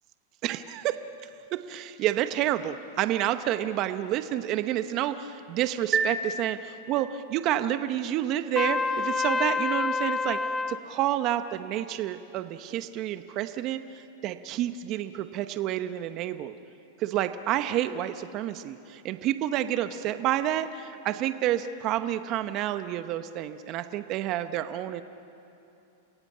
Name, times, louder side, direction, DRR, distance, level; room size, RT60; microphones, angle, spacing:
voice 1, 0.4-1.0 1.5-10.4 10.7-16.5 17.0-25.0, right 12 dB, 40° right, 10 dB, 1.0 m, -29 dB
sound 1, 5.9-7.4, right 4 dB, 25° right, 2.0 m, -30 dB
Trumpet, 8.6-10.8, left 4 dB, 15° left, 0.7 m, -27 dB
29.5 x 16.5 x 8.7 m, 2.8 s
hypercardioid pair, 120°, 0 cm